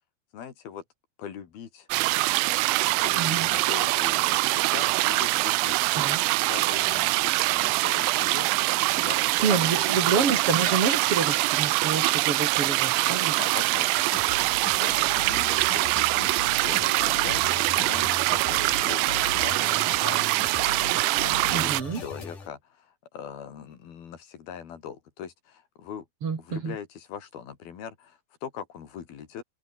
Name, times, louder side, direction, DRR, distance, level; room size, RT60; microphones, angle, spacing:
voice 1, 0.3-0.8 1.2-1.9 3.0-9.9 13.4-14.2 14.8-14.9 15.3-20.5 21.2-26.1 26.4-29.4, left 8 dB, 70° left, 4.5 m, -41 dB
sound 1, 1.9-21.8, right 21 dB, 80° right, 2.1 m, -24 dB
voice 2, 3.2-3.5 6.0-6.2 9.4-13.4 21.5-22.0 26.2-26.8, right 5 dB, 40° right, 3.1 m, -28 dB
sound 2, 14.1-22.5, left 4 dB, 50° left, 8.0 m, -39 dB
omnidirectional pair, 4.5 m